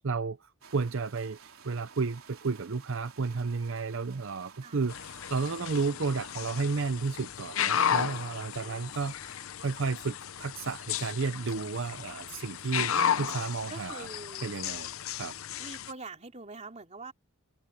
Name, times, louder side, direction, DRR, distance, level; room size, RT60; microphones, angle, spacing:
voice 1, 0.0-12.9 13.2-14.1 14.4-14.9 15.2-15.4, right 4 dB, 60° right, 0.6 m, -32 dB
sound 1, 0.6-5.6, right 6 dB, 75° right, 3.6 m, -54 dB
sound 2, 4.9-15.9, left 8 dB, 75° left, 0.7 m, -34 dB
voice 2, 8.0-9.0 13.7-14.6 15.6-17.1, right 3 dB, 30° right, 3.2 m, -45 dB
head